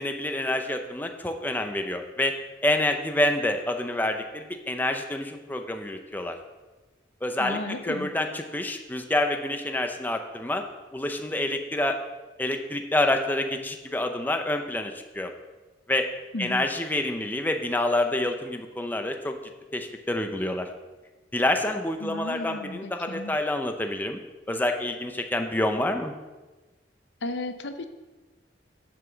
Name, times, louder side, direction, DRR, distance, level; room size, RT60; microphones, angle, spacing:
voice 1, 0.0-2.4 2.6-6.4 7.2-10.6 10.9-12.0 12.4-15.3 15.9-16.1 16.4-19.4 19.7-20.7 21.3-24.2 24.5-26.1, left 1 dB, 10° left, 5 dB, 0.6 m, -27 dB
voice 2, 7.4-8.1 16.3-16.7 22.0-23.4 27.2-27.8, left 2 dB, 75° left, 8 dB, 0.7 m, -34 dB
7.7 x 5.9 x 6.9 m, 1.2 s
head